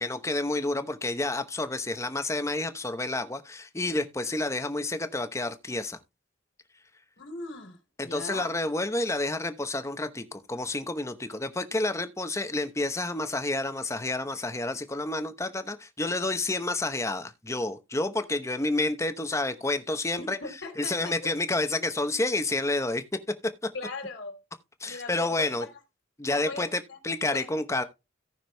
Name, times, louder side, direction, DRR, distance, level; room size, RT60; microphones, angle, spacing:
voice 1, 0.0-6.0 8.0-20.4 20.8-23.0 24.8-25.7 26.2-27.8, left 2 dB, 15° left, 0.8 m, -29 dB
voice 2, 7.2-8.5 20.2-21.3 23.7-24.4 24.8-25.8 26.3-27.0 27.3-27.5, left 3 dB, 70° left, 2.9 m, -39 dB
17.5 x 6.0 x 2.2 m
head